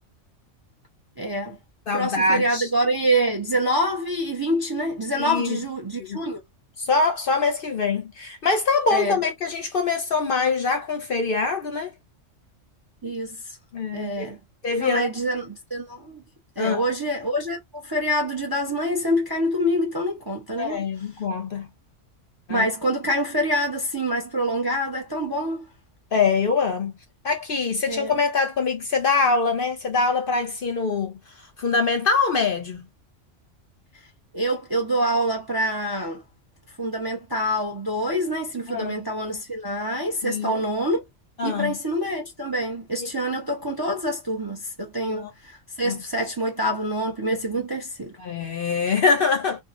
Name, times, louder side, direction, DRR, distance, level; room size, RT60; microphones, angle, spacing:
voice 1, 1.2-1.6 1.9-6.4 8.9-9.2 13.0-13.4 13.9-14.4 14.8-16.3 16.6-20.8 22.5-25.6 27.9-28.1 34.3-36.2 36.8-41.0 41.4-48.2, equal, 25° right, 0.5 m, -26 dB
voice 2, 1.9-2.7 5.1-5.6 6.0-6.2 6.8-11.9 13.7-14.3 14.6-15.1 16.6-16.8 20.6-21.7 22.5-22.7 26.1-26.9 27.2-32.9 38.7-39.0 40.2-40.6 41.4-41.8 43.0-43.1 45.0-45.3 45.8-46.0 48.2-49.6, left 4 dB, 55° left, 0.7 m, -24 dB
2.7 x 2.4 x 2.4 m
omnidirectional pair, 1.3 m